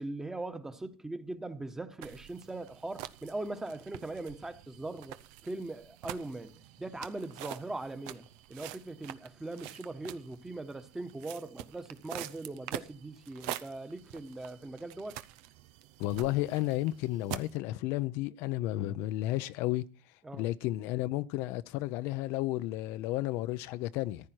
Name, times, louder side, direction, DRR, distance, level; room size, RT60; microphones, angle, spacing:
voice 1, 0.0-5.2 5.4-15.2 20.2-20.5, right 2 dB, 10° right, 1.2 m, -40 dB
sound 1, 2.0-17.6, right 13 dB, 85° right, 0.6 m, -46 dB
voice 2, 16.0-19.8 20.3-24.3, left 16 dB, 75° left, 0.6 m, -32 dB
14.5 x 9.9 x 4.5 m
cardioid pair, 120°, 4 cm